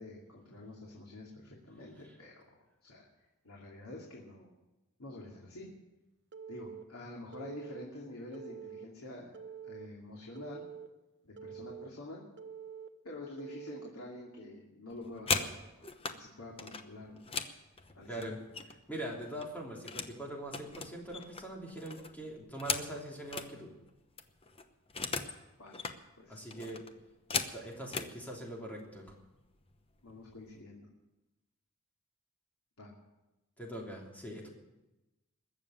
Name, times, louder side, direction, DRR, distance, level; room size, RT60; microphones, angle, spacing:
voice 1, 0.0-2.4 2.8-3.1 3.4-4.5 5.0-5.7 6.5-9.4 9.6-10.7 11.2-12.2 13.0-15.6 16.1-17.3 17.9-18.3 25.6-25.8 26.2-26.4 30.0-30.9 32.8-32.9, left 2 dB, 85° left, -2 dB, 2.7 m, -47 dB
Telephone, 6.3-6.8 7.3-7.8 8.3-8.9 9.3-9.9 10.4-10.9 11.4-11.9 12.4-12.9 13.4-13.9, right 7 dB, 55° right, 1.0 m, -46 dB
sound 1, 14.9-16.2 16.6-18.9 19.2-20.2 20.5-23.5 23.9-24.0 24.2-25.4 25.7-26.0 26.5-28.1 29.0-29.1 29.5-29.8 30.1-30.6, left 5 dB, 25° left, 0.9 m, -38 dB
voice 2, 18.1-18.4 18.9-23.7 26.3-26.9 27.3-29.1 33.6-34.5, right 1 dB, 5° left, -2 dB, 3.2 m, -42 dB
21.0 x 7.3 x 9.1 m, 1.0 s
head